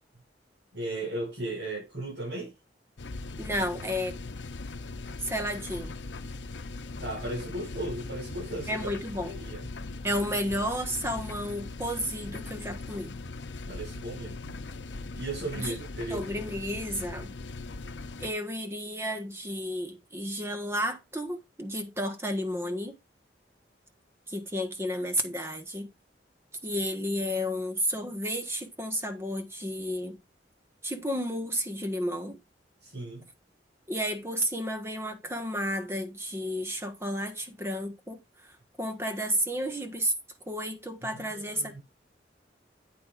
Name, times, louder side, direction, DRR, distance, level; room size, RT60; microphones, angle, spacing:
voice 1, 0.7-2.5 7.0-8.9 9.2-9.7 13.7-14.5 15.2-16.3 32.8-33.3 41.1-41.8, right 2 dB, 90° right, 6.4 m, -36 dB
sound 1, 3.0-18.3, left 3 dB, 85° left, 0.7 m, -40 dB
voice 2, 3.4-4.2 5.2-5.9 8.7-9.3 10.0-13.2 15.6-15.7 16.1-17.3 18.2-23.0 24.3-25.9 26.6-30.2 30.8-32.4 33.9-38.2 38.8-40.1 40.5-41.8, equal, 15° right, 1.5 m, -32 dB
9.1 x 8.6 x 2.6 m
head